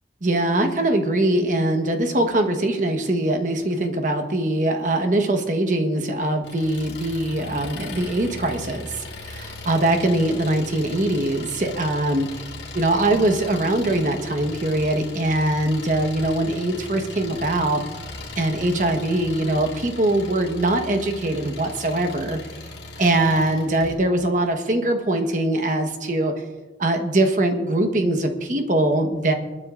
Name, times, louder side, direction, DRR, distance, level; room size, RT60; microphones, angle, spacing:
voice 1, 0.2-12.3 12.7-17.8 18.4-22.4 23.0-26.3 26.8-29.3, right 1 dB, 45° right, 5 dB, 1.2 m, -22 dB
Engine, 6.4-24.0, left 3 dB, 85° left, 1.8 m, -38 dB
28.0 x 9.9 x 2.5 m, 1.3 s
head